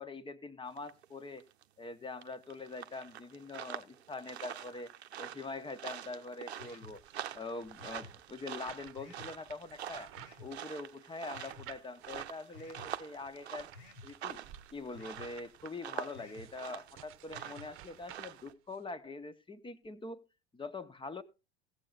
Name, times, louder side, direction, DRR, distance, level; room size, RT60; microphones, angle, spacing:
voice 1, 0.0-1.4 1.8-4.9 5.2-7.0 7.3-10.1 10.4-13.7 14.0-14.4 14.7-20.2 20.5-21.2, left 3 dB, 15° left, 13 dB, 1.3 m, -44 dB
sound 1, 0.8-1.0 1.4-1.6 2.2-18.5, right 10 dB, 80° right, 0.9 m, -46 dB
sound 2, 6.6-7.0 7.8-8.2 8.9-9.3 10.1-10.5 11.3-11.7 12.5-12.9 13.7-14.1 14.9-15.3 16.1-16.5 17.3-17.7, left 3 dB, 70° left, 2.8 m, -53 dB
sound 3, 6.9-10.9 11.5-12.4 12.7-18.8, right 12 dB, 40° right, 1.1 m, -56 dB
16.5 x 8.1 x 4.1 m, 0.30 s
figure-of-eight pair, 80°, 32 cm